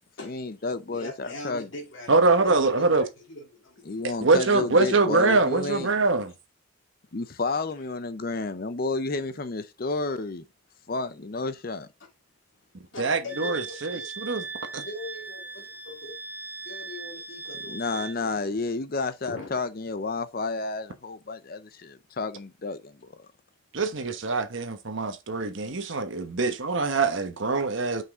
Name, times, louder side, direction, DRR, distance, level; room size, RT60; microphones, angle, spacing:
voice 1, 0.2-1.7 3.9-5.9 7.1-10.4 10.9-11.9 17.7-23.1, left 3 dB, 45° left, 0.6 m, -31 dB
voice 2, 0.9-4.0 12.9-14.1 14.8-16.2 16.6-18.5 19.3-19.5, left 1 dB, 65° left, 2.5 m, -41 dB
voice 3, 2.1-3.0 4.0-6.3 13.0-14.4 14.7-14.8 23.7-28.0, right 3 dB, 65° right, 1.1 m, -24 dB
Wind instrument woodwind instrument, 13.3-18.2, right 4 dB, 5° right, 0.4 m, -39 dB
5.9 x 5.5 x 3.6 m
head